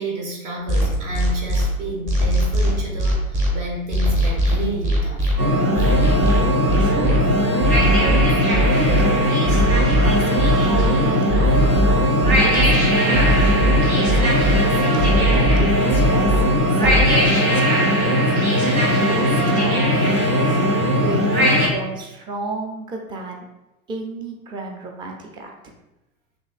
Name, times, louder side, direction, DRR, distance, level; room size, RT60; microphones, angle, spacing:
voice 1, 0.0-5.9, right 1 dB, 60° right, -1 dB, 1.4 m, -31 dB
sound 1, 0.7-1.6 2.1-3.5 3.9-5.3 5.8-7.2 7.6-9.0 9.4-10.9 11.3-12.7 13.1-14.6 15.0-16.4 16.8-17.1, right 1 dB, 30° right, 1.3 m, -19 dB
sound 2, 5.4-21.7, equal, 80° right, 1.2 m, -19 dB
voice 2, 6.8-7.7 8.0-8.2 8.5-9.6 10.0-21.3 21.7-23.5 23.9-25.7, right 2 dB, 10° right, 1 dB, 0.4 m, -32 dB
6.0 x 2.7 x 2.4 m, 0.98 s
figure-of-eight pair, 90°, 42 cm